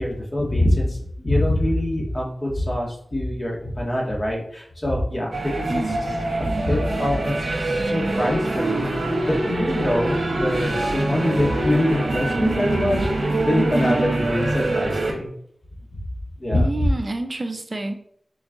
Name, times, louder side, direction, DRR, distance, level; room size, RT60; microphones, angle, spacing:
voice 1, 0.0-5.8 6.4-15.3 16.4-16.9, left 1 dB, 35° left, -3 dB, 1.7 m, -24 dB
sound 1, 5.3-15.1, right 2 dB, 70° right, 1.0 m, -24 dB
voice 2, 5.7-6.0 16.5-17.9, right 2 dB, 45° right, 6 dB, 0.5 m, -28 dB
4.4 x 2.9 x 3.7 m, 0.67 s
cardioid pair, 45°, 0 cm